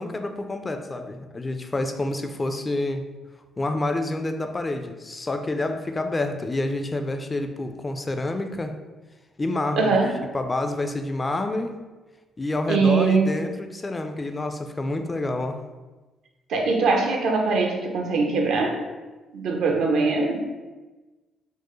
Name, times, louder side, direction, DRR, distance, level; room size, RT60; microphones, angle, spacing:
voice 1, 0.0-3.0 3.6-8.7 9.4-9.9 10.3-11.8 12.4-15.6, left 2 dB, 25° left, 6 dB, 0.3 m, -28 dB
voice 2, 9.8-10.2 12.7-13.4 16.5-18.8 19.3-20.5, right 4 dB, 75° right, 1 dB, 0.6 m, -22 dB
4.5 x 2.0 x 3.0 m, 1.2 s
cardioid pair, 90°, 0 cm